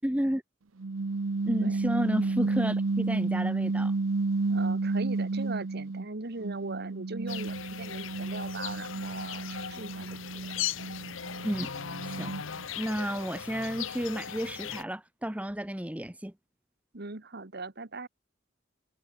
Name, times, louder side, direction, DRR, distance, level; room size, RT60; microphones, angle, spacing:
voice 1, 0.0-0.4 1.4-3.9 11.4-11.7 12.1-12.3 12.8-16.3, equal, 5° right, 1.1 m, -31 dB
sound 1, 0.8-6.1 6.4-12.6, right 3 dB, 90° right, 0.8 m, -31 dB
voice 2, 4.5-10.6 16.9-18.1, right 3 dB, 55° right, 1.6 m, -40 dB
sound 2, 7.3-14.8, left 9 dB, 80° left, 1.1 m, -38 dB
head